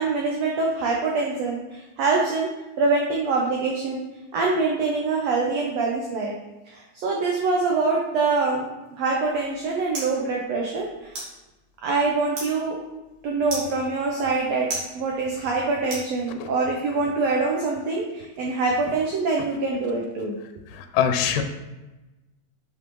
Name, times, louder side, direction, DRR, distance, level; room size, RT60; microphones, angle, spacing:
voice 1, 0.0-2.5 2.8-4.0 4.3-6.3 6.7-8.6 9.0-11.1 11.8-12.8 13.2-14.7 14.9-20.3, right 3 dB, 85° right, -1 dB, 1.4 m, -24 dB
sound 1, 9.1-16.7, right 2 dB, 55° right, 3.0 m, -39 dB
voice 2, 20.7-21.4, left 8 dB, 85° left, 6 dB, 2.2 m, -23 dB
6.4 x 5.5 x 3.0 m, 1.1 s
omnidirectional pair, 3.9 m